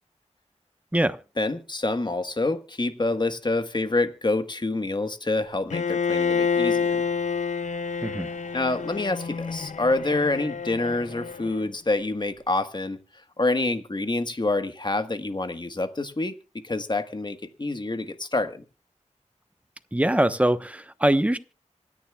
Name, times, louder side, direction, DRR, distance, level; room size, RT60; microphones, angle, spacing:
voice 1, 1.4-7.0 8.5-13.0 13.4-16.3 16.6-18.6, left 2 dB, 35° left, 9 dB, 1.5 m, -27 dB
Bowed string instrument, 5.7-11.7, left 6 dB, 70° left, 0.6 m, -28 dB
voice 2, 19.9-21.4, right 1 dB, 10° right, 11 dB, 1.0 m, -22 dB
26.0 x 10.5 x 2.4 m, 0.33 s
wide cardioid pair, 85°, 13 cm